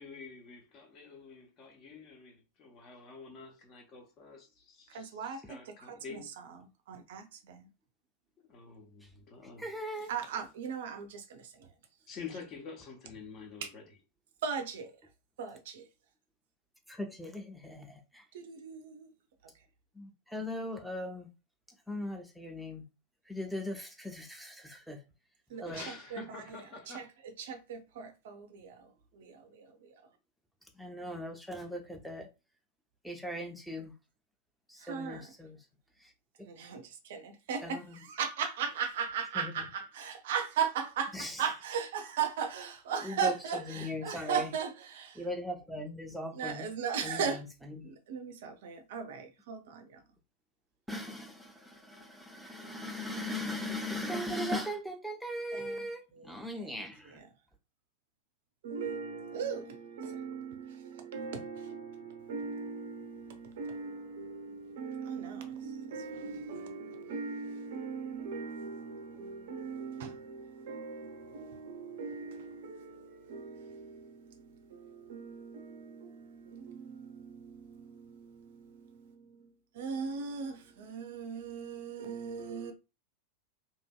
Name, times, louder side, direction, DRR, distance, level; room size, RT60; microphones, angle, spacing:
voice 1, 0.0-6.3 8.5-9.7 12.1-13.8 25.6-27.1, left 5 dB, 35° left, 0.9 m, -48 dB
voice 2, 4.9-7.7 10.1-11.7 13.6-13.7 14.4-14.9 15.4-15.8 18.3-19.1 25.5-29.9 34.8-35.3 36.4-45.3 46.3-47.4 47.8-50.0 55.5-57.3 58.6-79.5 79.7-82.7, right 6 dB, 55° right, 0.4 m, -38 dB
voice 3, 9.6-10.1 16.9-18.2 20.0-21.3 21.9-22.8 23.3-25.0 25.6-25.8 30.8-32.3 33.0-33.9 34.7-35.6 37.6-38.0 39.4-39.5 41.1-41.4 43.0-44.5 45.2-46.7 47.0-47.4 47.8-47.9 50.9-57.2, left 1 dB, ahead, 0.6 m, -39 dB
2.8 x 2.5 x 2.2 m
figure-of-eight pair, 90°, 0 cm